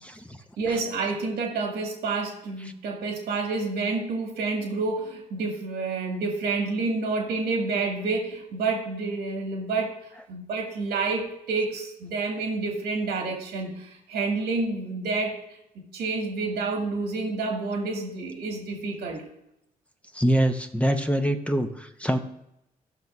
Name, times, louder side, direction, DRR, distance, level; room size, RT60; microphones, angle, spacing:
voice 1, 0.0-0.4 20.1-22.2, right 1 dB, 10° left, 6 dB, 0.9 m, -24 dB
voice 2, 0.6-10.0 10.3-15.4 15.8-19.2, right 3 dB, 90° right, 0 dB, 2.2 m, -29 dB
14.0 x 5.9 x 2.7 m, 0.83 s
supercardioid pair, 60°, 16 cm